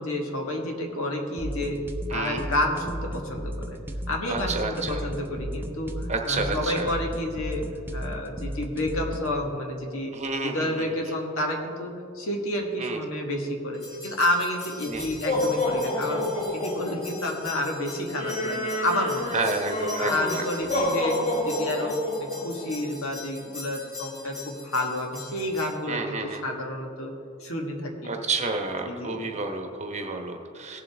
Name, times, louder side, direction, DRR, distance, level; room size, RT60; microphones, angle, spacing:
voice 1, 0.0-1.8 2.1-3.8 4.1-7.6 7.9-10.2 10.4-16.2 16.5-19.3 20.0-27.1 27.4-28.1 28.9-29.3, left 1 dB, 65° left, 1 dB, 1.6 m, -30 dB
sound 1, 1.4-9.4, equal, 10° right, 0.7 m, -35 dB
voice 2, 2.1-2.5 4.3-5.0 6.1-6.9 10.1-11.0 12.8-13.0 14.8-15.0 19.3-20.8 25.9-26.4 28.0-30.8, right 3 dB, 30° right, 4 dB, 1.1 m, -30 dB
sound 2, 13.8-25.7, left 1 dB, 35° left, 3.1 m, -30 dB
18.0 x 7.6 x 3.5 m, 2.6 s
head